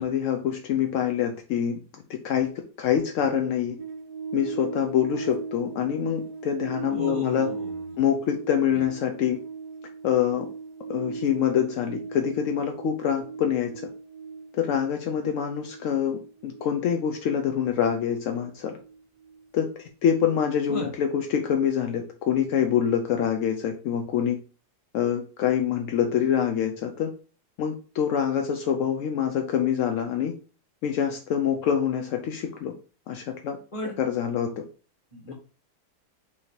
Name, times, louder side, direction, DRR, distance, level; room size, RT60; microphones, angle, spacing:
voice 1, 0.0-1.8 2.1-2.5 2.8-3.8 4.3-7.5 8.0-9.4 10.0-10.5 10.9-13.7 14.5-18.7 19.5-19.7 20.0-24.4 24.9-27.1 27.6-30.3 30.8-32.7 33.1-33.6 34.0-34.6 35.3-35.4, left 8 dB, 80° left, 5 dB, 0.7 m, -25 dB
sound 1, 3.8-20.3 20.6-20.8, right 5 dB, 55° right, 0.5 m, -39 dB
voice 2, 6.9-7.8 8.6-8.8 20.7-20.9 33.7-33.9 35.1-35.3, left 1 dB, 20° left, 0 dB, 1.2 m, -36 dB
5.6 x 2.8 x 3.1 m, 0.37 s
omnidirectional pair, 1.8 m